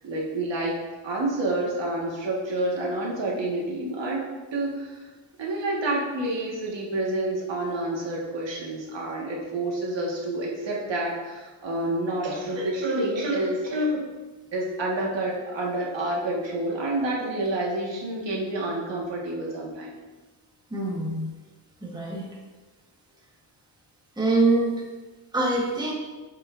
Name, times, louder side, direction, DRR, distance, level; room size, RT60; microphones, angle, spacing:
voice 1, 0.0-5.0 5.4-14.0 14.5-19.9, right 1 dB, 60° right, -3 dB, 1.7 m, -28 dB
voice 2, 20.7-21.3 21.8-22.3 24.2-24.8 25.3-25.9, right 2 dB, 10° right, -3 dB, 1.2 m, -24 dB
7.8 x 5.6 x 2.6 m, 1.2 s
cardioid pair, 95°, 49 cm